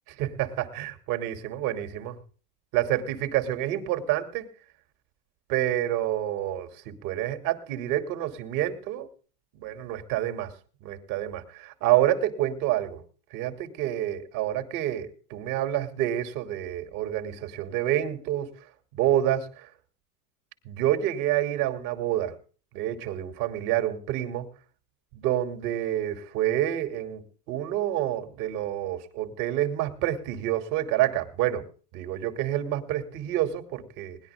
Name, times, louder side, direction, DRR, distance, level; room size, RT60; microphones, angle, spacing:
voice 1, 0.1-2.2 2.7-4.5 5.5-9.1 9.5-10.5 10.8-13.0 13.3-18.5 18.9-19.7 20.6-22.3 22.7-24.5 25.1-31.7 31.9-34.2, right 13 dB, 65° right, 6 dB, 2.9 m, -28 dB
20.0 x 11.0 x 3.6 m, 0.40 s
supercardioid pair, 110°, 48 cm